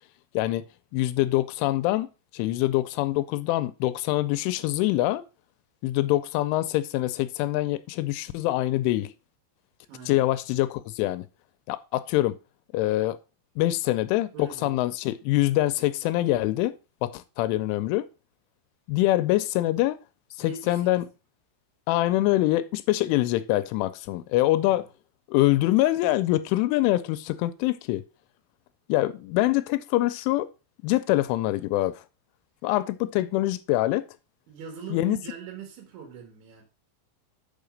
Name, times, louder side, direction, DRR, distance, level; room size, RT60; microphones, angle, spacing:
voice 1, 0.3-0.7 0.9-5.2 5.8-9.1 10.1-11.2 11.7-12.4 12.7-13.2 13.6-16.8 17.0-18.1 18.9-20.0 20.4-21.1 21.9-24.9 25.3-28.0 28.9-30.5 30.8-32.0 32.6-34.1 34.9-35.2, left 16 dB, 85° left, 2.9 m, -24 dB
voice 2, 9.9-10.3 14.3-14.9 20.4-21.0 24.6-24.8 34.5-36.6, right 7 dB, 75° right, 4.0 m, -42 dB
7.1 x 5.8 x 5.1 m
omnidirectional pair, 5.6 m